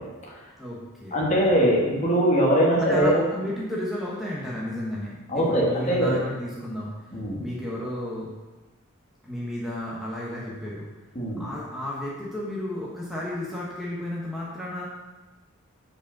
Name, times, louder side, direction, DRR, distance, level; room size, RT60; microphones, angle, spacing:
voice 1, 0.6-1.4 2.8-6.9 7.4-8.3 9.2-10.9 11.4-14.8, left 1 dB, ahead, -6 dB, 1.0 m, -32 dB
voice 2, 1.1-3.2 5.3-6.2 7.1-7.4 11.1-11.5, equal, 35° left, -3 dB, 1.4 m, -21 dB
5.0 x 4.9 x 5.7 m, 1.2 s
head